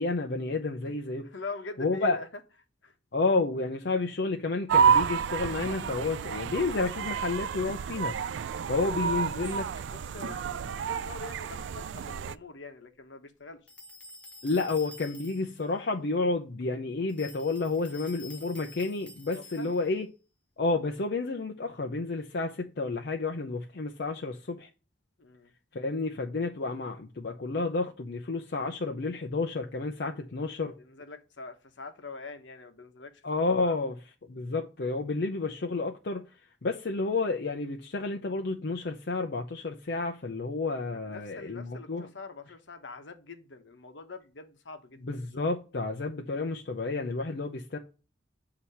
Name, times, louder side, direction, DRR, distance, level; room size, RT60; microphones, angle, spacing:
voice 1, 0.0-1.2 1.8-2.2 3.1-8.2 8.7-9.7 14.4-20.1 20.6-24.7 25.7-30.7 33.2-34.0 34.3-36.3 36.6-42.1 45.1-47.8, left 3 dB, 60° left, 0.6 m, -30 dB
voice 2, 1.2-2.3 2.8-2.9 8.6-9.5 9.9-13.7 19.3-19.8 25.2-25.5 30.8-33.8 40.9-45.1, left 3 dB, 75° left, 1.0 m, -44 dB
sound 1, 4.7-12.4, right 7 dB, 75° right, 0.3 m, -29 dB
sound 2, 13.7-15.6 17.1-20.0, left 2 dB, 5° left, 0.7 m, -49 dB
8.2 x 2.9 x 5.5 m
head